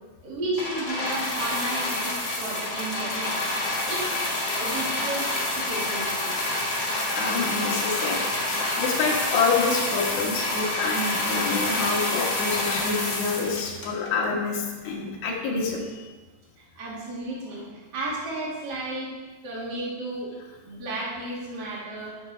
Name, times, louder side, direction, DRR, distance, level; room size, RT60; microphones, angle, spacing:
voice 1, 0.2-3.6 3.9-5.2 5.5-6.3 16.7-19.1 19.4-20.3 20.6-22.1, right 2 dB, 55° right, -6 dB, 1.1 m, -33 dB
sound 1, 0.6-14.2 15.0-15.1, left 2 dB, 65° left, 1.1 m, -28 dB
voice 2, 7.1-16.1, left 4 dB, 90° left, -3 dB, 3.7 m, -27 dB
14.0 x 5.7 x 3.3 m, 1.3 s
omnidirectional pair, 4.9 m